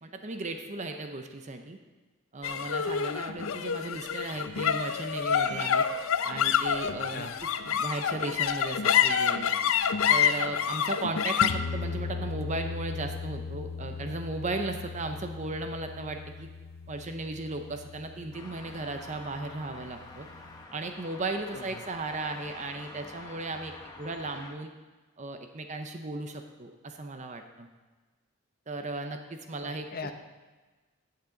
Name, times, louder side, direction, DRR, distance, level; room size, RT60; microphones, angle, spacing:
voice 1, 0.0-1.8 2.3-5.9 6.2-7.3 7.6-9.5 10.1-16.5 16.9-20.3 20.7-23.7 24.0-24.7 25.2-27.7 28.7-29.9, right 2 dB, 35° right, 6 dB, 0.7 m, -36 dB
sound 1, 2.4-19.0, left 7 dB, 70° left, 0.5 m, -29 dB
sound 2, 4.0-12.1, right 3 dB, 80° right, 1.9 m, -50 dB
sound 3, 18.3-24.5, left 2 dB, 20° left, 1.0 m, -47 dB
voice 2, 29.6-30.1, left 4 dB, 45° left, 7 dB, 0.8 m, -39 dB
14.5 x 8.4 x 3.9 m, 1.3 s
head